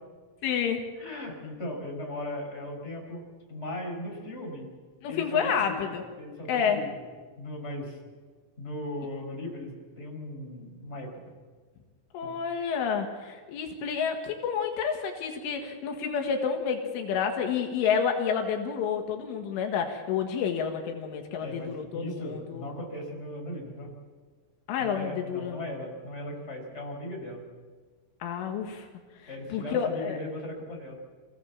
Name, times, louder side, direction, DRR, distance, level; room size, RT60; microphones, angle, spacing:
voice 1, 0.4-0.8 5.0-6.0 6.5-6.9 12.1-22.7 24.7-25.6 28.2-28.9 29.5-30.2, left 7 dB, 80° left, 3 dB, 4.3 m, -29 dB
voice 2, 1.0-3.2 3.5-4.7 5.1-5.8 6.2-7.1 7.4-8.0 8.6-11.1 12.2-12.4 21.4-23.9 24.8-27.4 29.3-31.0, left 1 dB, 15° left, 0 dB, 5.2 m, -38 dB
27.0 x 16.5 x 7.3 m, 1.4 s
omnidirectional pair, 5.6 m